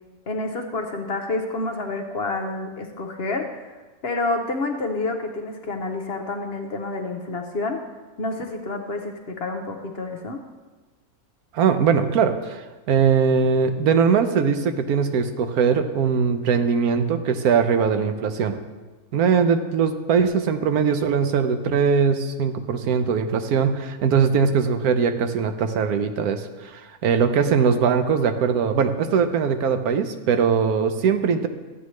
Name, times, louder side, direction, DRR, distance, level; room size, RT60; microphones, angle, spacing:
voice 1, 0.3-3.8 4.0-7.8 8.2-10.4, left 2 dB, 55° left, 4 dB, 0.8 m, -28 dB
voice 2, 11.5-12.6 12.9-18.6 19.1-26.5 26.7-31.5, right 6 dB, 80° right, 8 dB, 1.2 m, -21 dB
13.0 x 8.2 x 3.1 m, 1.3 s
omnidirectional pair, 1.5 m